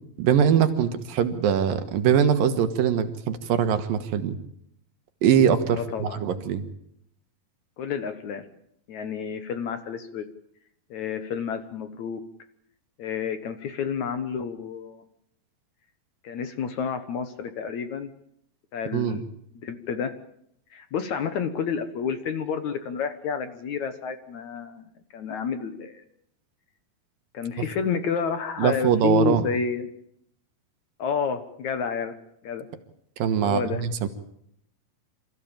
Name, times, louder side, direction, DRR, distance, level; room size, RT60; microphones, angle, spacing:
voice 1, 0.2-4.4 5.2-6.6 18.9-19.2 28.6-29.4 33.2-34.1, right 8 dB, 70° right, 10 dB, 3.0 m, -22 dB
voice 2, 5.7-6.2 7.8-8.4 8.9-10.3 10.9-12.2 13.0-15.0 16.2-18.1 18.7-19.2 19.6-20.1 20.7-24.8 25.1-26.0 27.3-29.9 31.0-32.2 32.4-32.7 33.4-33.8, left 6 dB, 60° left, 10 dB, 2.2 m, -30 dB
27.5 x 15.0 x 8.9 m, 0.73 s
omnidirectional pair, 4.4 m